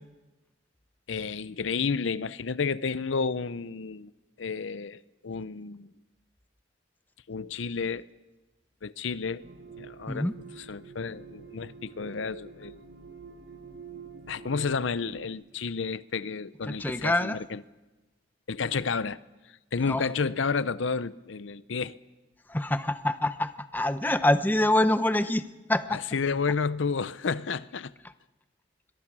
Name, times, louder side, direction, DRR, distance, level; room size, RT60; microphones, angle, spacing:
voice 1, 1.1-4.1 4.4-5.9 7.3-8.1 8.8-9.4 9.8-10.3 10.5-12.7 14.3-17.6 18.5-19.2 19.7-21.9 25.9-27.9, left 5 dB, 80° left, 0.6 m, -31 dB
sound 1, 9.4-15.3, right 5 dB, 75° right, 1.6 m, -47 dB
voice 2, 16.7-17.4 19.8-20.0 22.5-25.4 25.7-26.0, left 1 dB, 10° left, 0.7 m, -25 dB
22.5 x 22.5 x 6.2 m
head